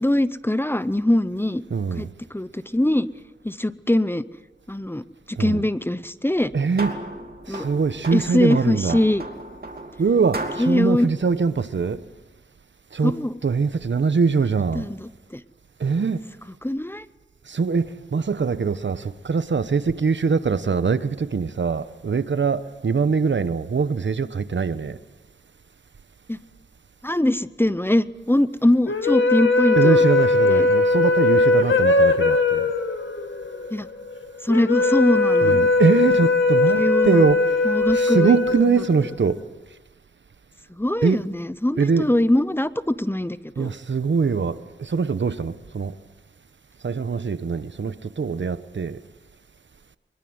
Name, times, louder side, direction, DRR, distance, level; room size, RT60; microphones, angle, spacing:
voice 1, 0.0-1.6 2.0-3.1 3.4-4.2 4.7-6.5 7.5-7.6 8.1-9.2 10.6-11.1 13.0-13.4 14.7-15.4 16.6-17.0 26.3-26.4 27.0-30.0 30.4-30.7 33.7-33.9 34.4-35.7 36.8-37.3 37.6-38.4 40.8-43.7, left 1 dB, 10° left, 0.7 m, -22 dB
voice 2, 1.7-2.1 5.4-5.6 6.5-6.9 7.5-9.0 10.0-12.0 12.9-13.2 13.4-14.9 15.8-16.2 17.5-25.0 29.8-32.7 35.4-39.4 41.0-41.2 41.8-42.1 43.6-45.9 46.8-49.0, right 5 dB, 75° right, 1.0 m, -23 dB
sound 1, 6.3-12.2, right 2 dB, 55° right, 2.8 m, -36 dB
sound 2, 28.9-39.3, left 3 dB, 90° left, 1.8 m, -19 dB
23.5 x 21.5 x 7.9 m
wide cardioid pair, 80°, 19 cm